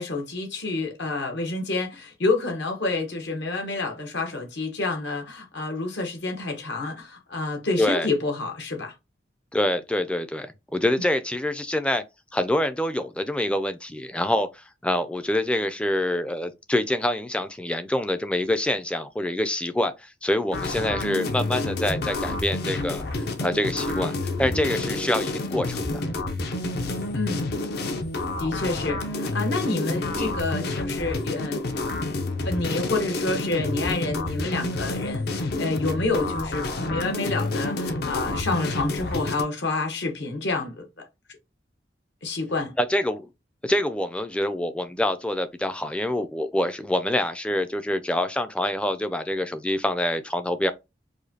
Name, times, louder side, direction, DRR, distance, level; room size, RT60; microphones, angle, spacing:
voice 1, 0.0-8.9 27.1-27.5 28.4-31.6 32.5-41.0 42.2-42.7, left 3 dB, 75° left, 1.1 m, -28 dB
voice 2, 9.5-12.0 12.3-26.0 30.1-30.3 42.8-43.3 43.6-50.7, left 1 dB, 5° left, 0.3 m, -26 dB
sound 1, 20.5-39.4, left 2 dB, 60° left, 0.6 m, -29 dB
4.9 x 2.2 x 2.8 m
head